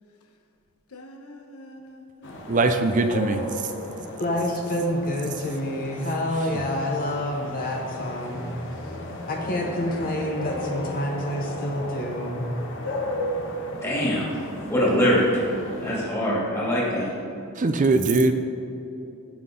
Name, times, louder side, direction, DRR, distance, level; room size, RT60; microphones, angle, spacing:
voice 1, 0.9-3.6 4.0-4.2, left 1 dB, 85° left, 3 dB, 1.0 m, -47 dB
sound 1, 2.2-16.0, left 1 dB, 55° left, 1.2 m, -35 dB
voice 2, 2.5-3.4 17.6-18.3, right 3 dB, 35° right, 7 dB, 0.4 m, -20 dB
voice 3, 4.2-8.4 9.3-12.5, left 1 dB, 40° left, 0 dB, 1.0 m, -28 dB
voice 4, 13.8-14.4 14.6-15.4 15.8-17.1, equal, 15° left, -6 dB, 2.5 m, -23 dB
15.0 x 5.9 x 3.8 m, 2.9 s
head